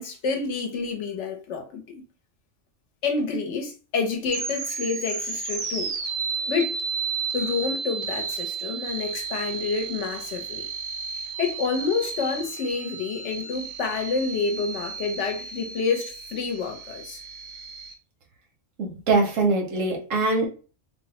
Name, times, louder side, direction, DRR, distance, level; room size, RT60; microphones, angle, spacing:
voice 1, 0.0-1.8 3.0-5.9 6.5-6.8 7.3-10.7 11.4-17.2, left 5 dB, 70° left, 1.0 m, -28 dB
sound 1, 4.3-17.9, right 5 dB, 60° right, 0.7 m, -33 dB
voice 2, 18.8-20.5, right 3 dB, 85° right, 1.2 m, -23 dB
2.9 x 2.0 x 2.9 m
omnidirectional pair, 1.3 m